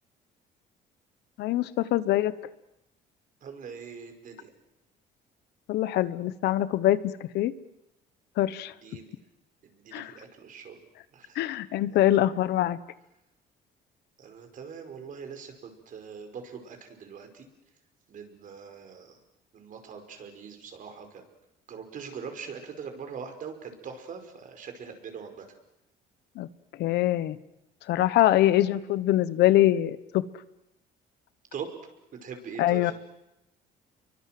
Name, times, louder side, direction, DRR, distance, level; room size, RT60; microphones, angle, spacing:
voice 1, 1.4-2.3 5.7-7.5 8.4-8.7 9.9-10.1 11.3-12.8 26.4-26.5 26.8-27.4 27.9-30.2 32.6-32.9, left 14 dB, 80° left, 15 dB, 1.2 m, -24 dB
voice 2, 3.4-4.5 8.8-9.1 9.6-10.8 11.1-11.4 14.2-17.5 18.1-19.2 19.5-21.2 21.7-25.4 31.5-31.7 32.2-32.9, right 6 dB, 50° right, 5 dB, 5.4 m, -42 dB
29.0 x 23.5 x 7.8 m, 0.88 s
cardioid pair, 110°, 17 cm